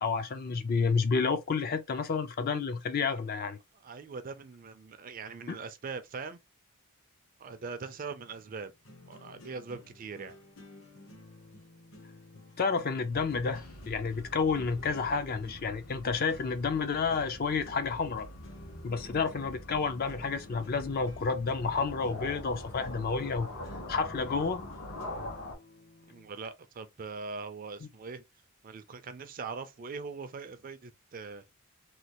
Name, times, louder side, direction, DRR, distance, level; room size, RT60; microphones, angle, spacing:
voice 1, 0.0-3.6 5.5-5.6 12.6-18.3 18.8-23.5 23.9-24.6, left 5 dB, 45° left, 0.4 m, -30 dB
voice 2, 3.0-3.4 3.8-6.4 7.4-8.7 9.1-10.4 18.9-19.1 26.1-28.2 28.6-31.4, right 4 dB, 40° right, 0.4 m, -42 dB
sound 1, 7.5-26.3, left 2 dB, 60° left, 0.9 m, -54 dB
sound 2, 13.1-25.5, left 1 dB, 85° left, 1.5 m, -44 dB
3.1 x 2.3 x 2.8 m
head